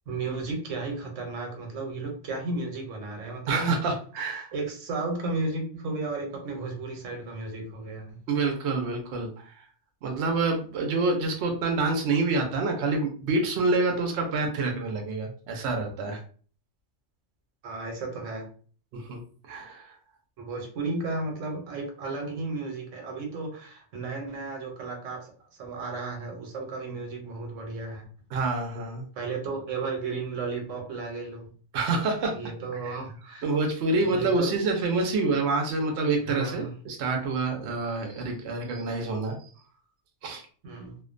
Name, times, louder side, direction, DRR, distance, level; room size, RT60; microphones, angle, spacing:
voice 1, 0.1-3.8 4.5-8.2 17.6-18.5 20.4-25.3 25.6-28.0 29.2-31.5 32.3-33.5 34.0-34.6 36.2-36.7 40.6-41.0, right 3 dB, 85° right, 1 dB, 1.1 m, -34 dB
voice 2, 3.5-4.5 8.3-9.7 10.0-16.2 18.9-19.2 19.5-19.9 28.3-29.0 31.7-32.4 32.8-32.9 33.4-39.5 40.2-40.4, right 3 dB, 70° right, 3 dB, 0.8 m, -27 dB
2.5 x 2.1 x 2.4 m, 0.43 s
omnidirectional pair, 1.3 m